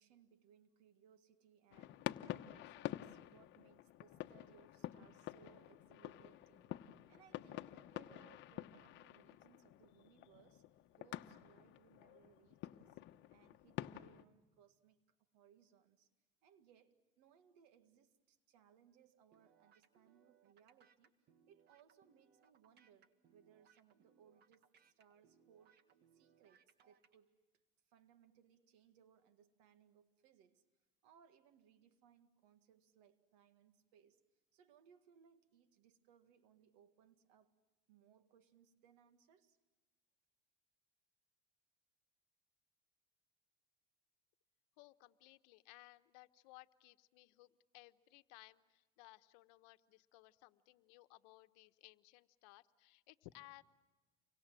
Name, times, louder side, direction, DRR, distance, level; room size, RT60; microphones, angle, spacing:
voice 1, 0.0-13.0 13.3-15.0 15.3-16.1 16.4-24.7 25.0-25.8 26.1-27.4 27.9-30.7 31.0-34.2 34.5-37.6 37.9-39.6, right 8 dB, 90° right, 2.0 m, -68 dB
sound 1, 1.7-14.2, left 14 dB, 60° left, 1.1 m, -49 dB
sound 2, 19.3-27.2, right 7 dB, 55° right, 1.9 m, -72 dB
voice 2, 44.8-53.6, left 20 dB, 85° left, 1.1 m, -61 dB
30.0 x 24.5 x 7.6 m
supercardioid pair, 115°, 21 cm